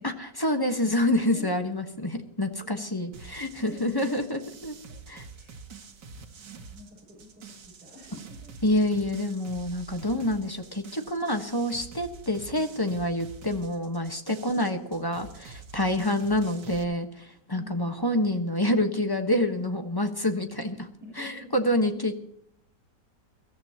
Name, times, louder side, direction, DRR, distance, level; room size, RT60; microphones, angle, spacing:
voice 1, 0.0-4.7 5.1-5.3 8.6-20.9 21.2-22.1, left 1 dB, 15° left, 5 dB, 1.1 m, -27 dB
voice 2, 0.8-1.6 2.6-2.8 3.5-4.1 5.3-5.7 6.2-8.5 15.9-16.3 17.5-18.0 21.0-21.9, left 1 dB, 5° right, -6 dB, 6.8 m, -46 dB
sound 1, 3.1-16.8, right 5 dB, 90° right, 2.1 m, -46 dB
22.5 x 14.0 x 2.9 m, 0.70 s
omnidirectional pair, 1.8 m